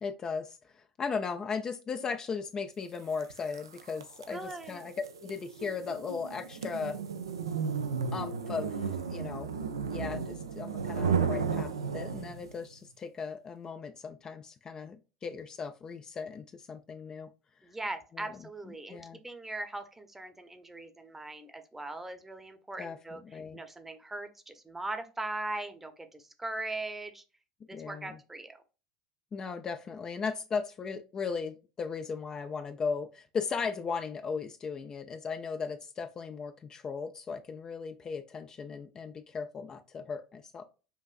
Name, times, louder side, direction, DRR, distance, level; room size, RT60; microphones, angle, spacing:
voice 1, 0.0-4.9 5.2-7.0 8.1-9.5 9.9-17.3 18.1-18.4 18.9-19.2 22.8-23.6 27.7-28.2 29.3-40.6, left 5 dB, 30° left, 0.4 m, -37 dB
sound 1, 3.2-12.6, right 6 dB, 90° right, 0.4 m, -34 dB
voice 2, 4.3-4.8 17.6-27.2 27.7-28.6, right 2 dB, 10° right, 0.8 m, -40 dB
5.6 x 2.5 x 2.4 m
hypercardioid pair, 80°, 2 cm